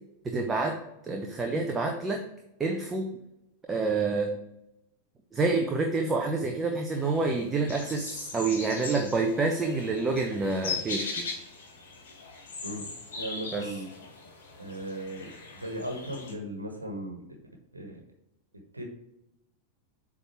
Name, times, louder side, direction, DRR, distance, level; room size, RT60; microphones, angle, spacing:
voice 1, 0.2-0.7 1.0-2.2 2.6-3.1 3.7-4.3 5.3-11.2 13.5-13.7, right 3 dB, 15° right, 2 dB, 0.8 m, -28 dB
sound 1, 6.9-16.3, left 4 dB, 60° left, 1.9 m, -40 dB
voice 2, 12.6-13.9 14.6-17.2 17.7-18.0 18.7-18.8, right 1 dB, 80° right, 3 dB, 1.3 m, -37 dB
8.0 x 3.7 x 4.5 m, 0.87 s
figure-of-eight pair, 90°, 0 cm